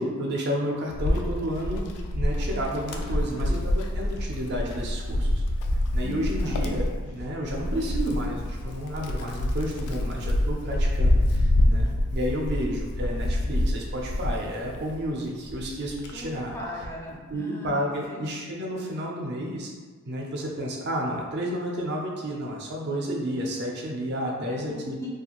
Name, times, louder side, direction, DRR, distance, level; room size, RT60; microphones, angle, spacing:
voice 1, 0.0-1.8 2.1-5.4 5.9-16.5 17.3-19.7 20.1-24.9, equal, 50° right, -1 dB, 0.4 m, -31 dB
Wind, 1.0-15.1 15.5-17.0, left 1 dB, 80° left, 0.3 m, -26 dB
voice 2, 2.9-3.6 6.0-6.6 16.1-18.3 24.5-25.1, left 1 dB, 10° left, -4 dB, 0.4 m, -40 dB
2.4 x 2.3 x 2.9 m, 1.5 s
head